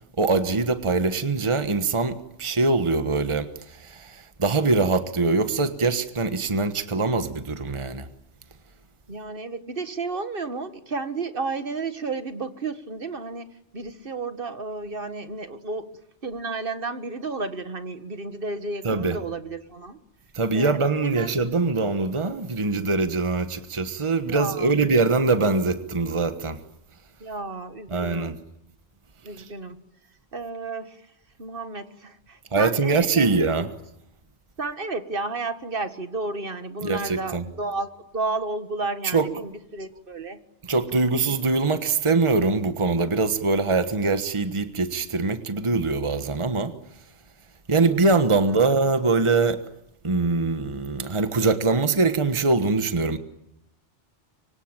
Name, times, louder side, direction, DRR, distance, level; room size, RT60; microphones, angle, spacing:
voice 1, 0.2-8.1 18.8-19.2 20.3-26.6 27.9-28.3 29.4-29.5 32.5-33.7 36.8-37.4 39.1-39.3 40.6-46.7 47.7-49.6 50.0-53.2, right 3 dB, 25° right, 10 dB, 1.4 m, -23 dB
voice 2, 9.1-13.5 13.7-15.9 16.2-20.0 20.5-20.7 21.0-21.3 24.3-24.8 27.2-28.4 29.2-29.8 30.3-31.0 31.4-33.4 34.6-40.4 48.3-48.7, right 3 dB, 50° right, 10 dB, 1.9 m, -32 dB
25.5 x 24.5 x 9.0 m, 0.81 s
omnidirectional pair, 1.2 m